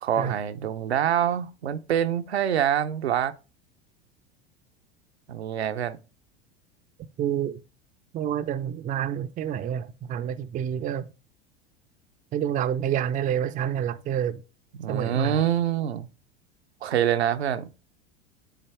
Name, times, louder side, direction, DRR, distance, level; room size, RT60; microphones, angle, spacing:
voice 1, 0.0-3.3 5.3-6.0 14.8-16.1 16.8-17.7, right 10 dB, 80° right, 0.7 m, -25 dB
voice 2, 7.2-7.6 8.1-11.1 12.3-14.4 14.9-15.4, right 9 dB, 25° right, 0.5 m, -28 dB
9.2 x 4.0 x 3.4 m
hypercardioid pair, 85°, 32 cm